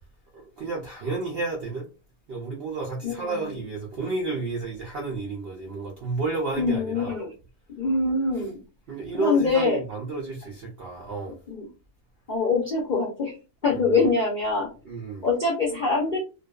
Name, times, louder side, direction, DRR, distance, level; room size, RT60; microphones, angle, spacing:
voice 1, 0.3-1.9 2.3-7.2 8.9-11.4 13.7-14.1 14.8-15.3, right 3 dB, 70° right, 0.5 m, -31 dB
voice 2, 3.0-3.4 6.5-7.3 7.7-8.6 9.1-9.8 11.5-11.7 12.3-13.3 13.6-14.7 15.2-16.2, left 3 dB, 65° left, 0.4 m, -24 dB
2.5 x 2.3 x 2.3 m
omnidirectional pair, 1.6 m